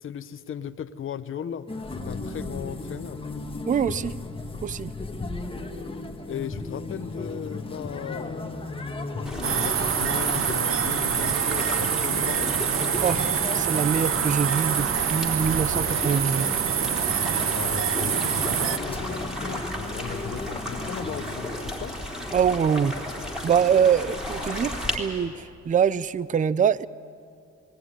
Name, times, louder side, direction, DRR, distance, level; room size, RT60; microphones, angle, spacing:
voice 1, 0.0-3.2 6.2-12.5 17.5-21.9, left 8 dB, 45° left, 9 dB, 0.8 m, -37 dB
sound 1, 1.7-21.4, left 2 dB, 20° left, 1.6 m, -36 dB
voice 2, 3.7-4.2 4.6-4.9 13.0-16.5 22.3-22.9 23.4-26.9, right 7 dB, 25° right, 20 dB, 0.5 m, -24 dB
sound 2, 9.3-25.0, left 1 dB, ahead, 3.6 m, -34 dB
sound 3, 9.4-18.8, right 8 dB, 45° right, 0.8 m, -26 dB
19.5 x 18.0 x 9.9 m, 2.3 s
cardioid pair, 90°, 30 cm